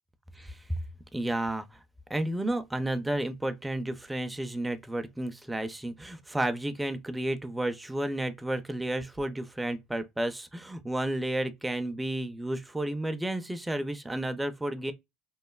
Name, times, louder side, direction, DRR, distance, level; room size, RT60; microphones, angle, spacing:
voice 1, 0.4-0.8 1.1-1.8 2.1-14.9, right 1 dB, 10° right, 0.4 m, -32 dB
3.0 x 2.0 x 2.2 m
supercardioid pair, 100°, 0 cm